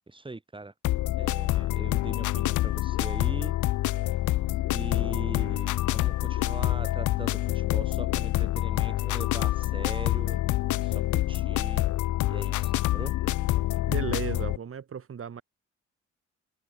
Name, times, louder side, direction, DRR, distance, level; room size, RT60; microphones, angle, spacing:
voice 1, 0.1-0.7 1.2-3.5 4.7-10.4 10.8-11.9 12.3-13.1, right 2 dB, 15° right, 3.9 m, -41 dB
sound 1, 0.8-14.6, left 16 dB, 75° left, 0.8 m, -27 dB
voice 2, 13.9-15.4, right 7 dB, 45° right, 3.5 m, -35 dB
cardioid pair, 90°, 30 cm